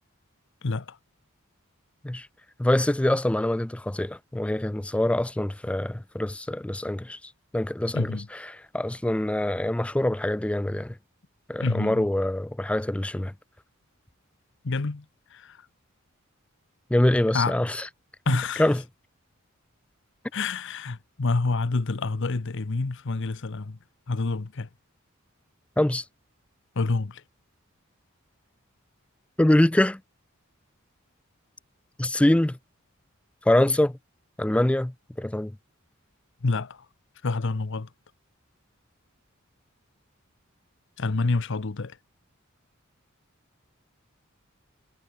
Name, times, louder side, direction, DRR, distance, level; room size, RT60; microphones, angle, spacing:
voice 1, 0.6-1.0 7.9-8.3 11.6-12.1 14.6-15.1 15.3-15.6 17.3-17.6 18.3-18.7 20.3-23.8 24.1-24.7 26.7-27.2 36.4-36.9 37.2-37.9 41.0-42.0, left 3 dB, 60° left, 0.8 m, -27 dB
voice 2, 2.6-7.2 7.5-8.4 8.7-11.0 11.5-13.3 16.9-17.9 18.3-18.8 25.8-26.0 29.4-30.0 32.0-32.6 33.5-34.0 34.4-35.5, left 1 dB, 5° left, 0.3 m, -24 dB
head